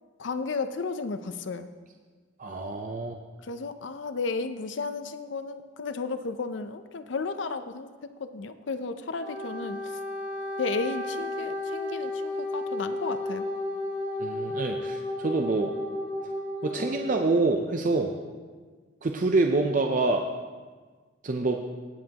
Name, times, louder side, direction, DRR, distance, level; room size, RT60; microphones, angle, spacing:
voice 1, 0.2-1.7 3.4-9.9 10.6-13.5, left 4 dB, 65° left, 10 dB, 0.5 m, -33 dB
voice 2, 2.4-3.2 14.2-15.7 16.6-18.1 19.0-20.2 21.2-21.6, right 3 dB, 45° right, 3 dB, 0.5 m, -26 dB
Wind instrument woodwind instrument, 9.2-17.1, left 1 dB, 70° right, 3.2 m, -33 dB
18.5 x 7.6 x 2.9 m, 1.4 s
head